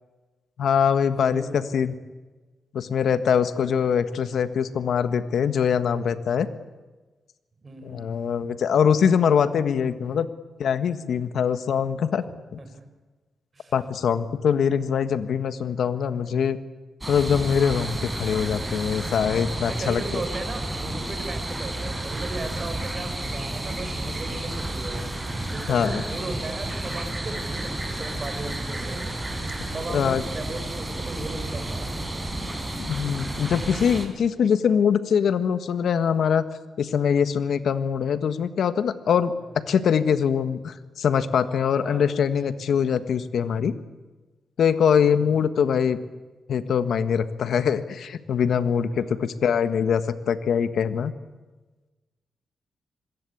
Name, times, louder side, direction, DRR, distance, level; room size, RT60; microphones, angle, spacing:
voice 1, 0.6-1.9 2.7-6.5 7.8-10.3 10.6-12.2 12.5-12.6 13.7-16.6 17.1-20.2 25.7-26.0 29.9-30.2 32.8-36.4 36.8-39.3 39.7-43.7 44.6-46.0 46.5-51.1, left 7 dB, 75° left, 11 dB, 1.6 m, -23 dB
voice 2, 1.2-1.9 7.6-8.2 12.2-12.8 13.5-13.7 19.6-25.0 25.5-29.0 29.7-32.0 39.4-39.6 41.8-42.3 44.9-45.4 48.9-49.3, right 2 dB, 35° right, 6 dB, 5.9 m, -37 dB
sound 1, 17.0-34.1, right 1 dB, 15° right, 4.9 m, -31 dB
26.5 x 21.5 x 8.6 m, 1.2 s
cardioid pair, 95°, 0 cm